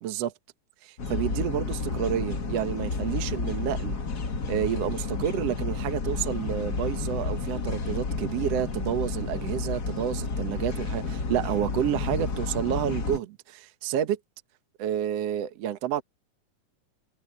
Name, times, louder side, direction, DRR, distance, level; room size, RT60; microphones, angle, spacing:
voice 1, 0.0-0.3 0.8-4.0 4.5-14.2 14.8-16.0, right 10 dB, 60° right, 1.9 m, -29 dB
sound 1, 1.0-13.2, left 4 dB, 35° left, 1.8 m, -31 dB
omnidirectional pair, 3.8 m